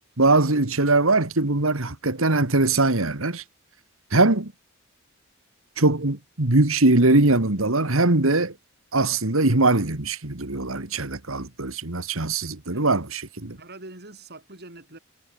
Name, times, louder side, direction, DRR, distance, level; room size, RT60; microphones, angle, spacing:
voice 1, 0.2-3.4 4.1-4.5 5.8-8.5 8.9-13.6, right 2 dB, 70° right, 2.2 m, -21 dB
voice 2, 13.6-15.0, right 2 dB, 50° right, 5.8 m, -43 dB
head